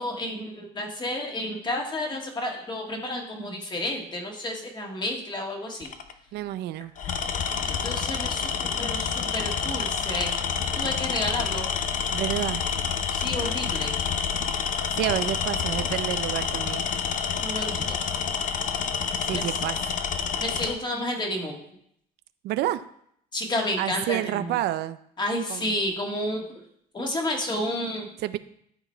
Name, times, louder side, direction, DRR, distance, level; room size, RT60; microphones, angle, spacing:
voice 1, 0.0-5.9 7.6-10.3 10.7-11.7 13.1-13.9 17.4-18.0 19.3-19.6 20.4-21.6 23.3-24.6 25.2-26.6 26.9-28.1, left 1 dB, 25° left, 1 dB, 1.8 m, -31 dB
Tools, 5.8-6.1 7.0-20.8, left 7 dB, 50° left, 0.7 m, -28 dB
voice 2, 6.3-6.9 12.1-12.6 14.9-16.8 19.2-20.0 22.4-22.8 23.8-25.0 25.5-25.6 28.2-28.4, right 13 dB, 75° right, 13 dB, 0.4 m, -29 dB
12.0 x 4.0 x 4.5 m, 0.71 s
cardioid pair, 110°, 17 cm